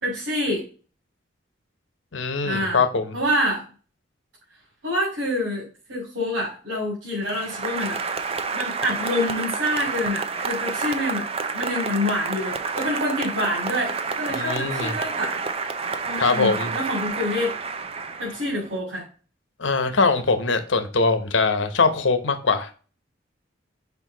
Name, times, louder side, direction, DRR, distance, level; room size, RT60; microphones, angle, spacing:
voice 1, 0.0-0.6 2.4-2.8 3.1-3.6 4.8-8.0 8.5-11.2 11.5-15.4 16.0-17.5 18.2-19.0, left 1 dB, 80° right, 2.8 m, -27 dB
voice 2, 2.1-3.1 14.3-14.9 16.2-16.7 19.6-22.7, left 4 dB, 85° left, 1.0 m, -22 dB
Applause, 7.2-18.7, right 4 dB, 30° right, 0.5 m, -29 dB
5.3 x 4.7 x 3.9 m
head